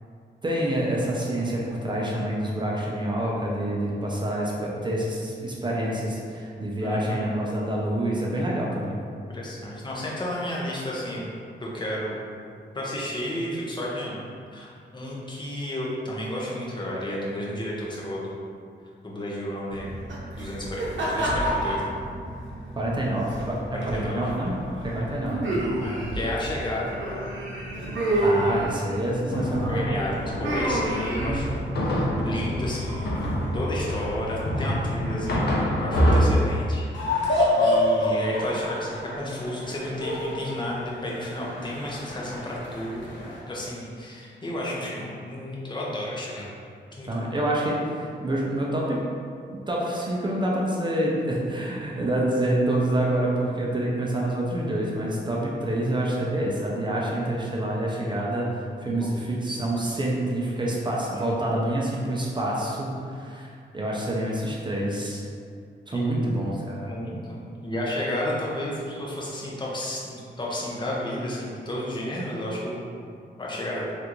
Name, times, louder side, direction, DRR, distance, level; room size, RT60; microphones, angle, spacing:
voice 1, 0.4-9.0 22.8-24.6 24.8-25.4 28.2-29.7 47.1-49.0 49.7-65.2 65.9-66.9, right 1 dB, 25° right, -4 dB, 0.5 m, -27 dB
voice 2, 6.8-7.3 9.3-11.3 11.6-12.2 12.7-14.2 14.5-18.4 19.0-19.9 20.4-21.9 23.7-24.2 25.8-27.3 28.7-28.8 29.7-33.2 33.5-36.9 37.5-46.5 47.0-47.3 59.0-59.1 65.9-66.3 66.8-72.8 73.4-73.8, left 1 dB, 25° left, -5 dB, 0.7 m, -32 dB
sound 1, 19.7-35.3, right 1 dB, 80° right, 0.8 m, -30 dB
sound 2, 29.3-36.3, equal, 60° left, 0.6 m, -26 dB
sound 3, 36.9-43.4, left 1 dB, 85° left, 1.0 m, -27 dB
3.4 x 2.5 x 3.0 m, 2.3 s
wide cardioid pair, 110°, 19 cm